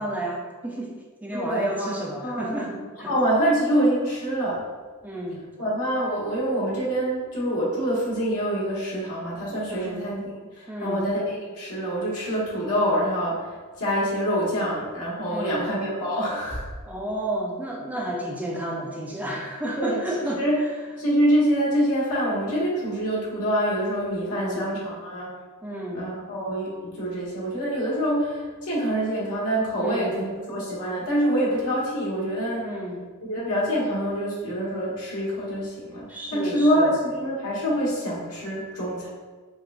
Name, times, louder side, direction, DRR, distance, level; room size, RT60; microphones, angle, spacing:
voice 1, 0.0-3.1 5.0-5.4 9.7-10.0 10.7-11.0 15.3-15.7 16.9-20.7 24.3-24.7 25.6-26.0 29.8-30.1 32.6-33.0 36.1-36.9, right 1 dB, 5° right, -2 dB, 0.3 m, -32 dB
voice 2, 1.3-2.7 3.1-4.6 5.6-16.6 19.8-20.0 20.4-20.6 21.0-25.3 25.9-32.7 33.2-39.1, equal, 85° left, -6 dB, 1.3 m, -26 dB
4.6 x 2.3 x 2.5 m, 1.4 s
head